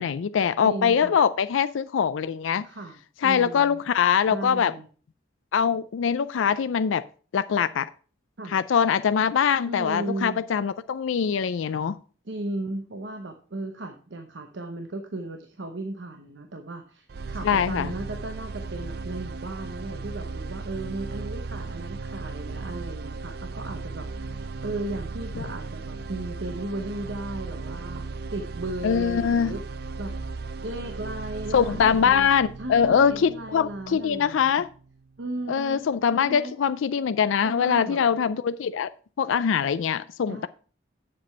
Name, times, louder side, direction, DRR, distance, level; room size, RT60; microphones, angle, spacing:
voice 1, 0.0-2.6 3.2-4.7 5.5-7.0 7.3-7.9 8.5-12.0 17.4-17.9 28.8-29.5 31.5-34.7 35.5-38.9 39.2-40.5, left 7 dB, 80° left, 13 dB, 0.4 m, -23 dB
voice 2, 0.6-1.2 2.6-3.8 4.3-4.9 8.4-8.5 9.7-10.4 12.3-29.6 30.0-30.1 30.6-32.3 32.6-34.7 35.2-36.5 37.4-38.0 40.3-40.5, right 2 dB, 70° right, 5 dB, 0.9 m, -36 dB
sound 1, 17.1-35.1, right 4 dB, 55° right, 0.4 m, -36 dB
7.8 x 7.6 x 4.2 m, 0.40 s
head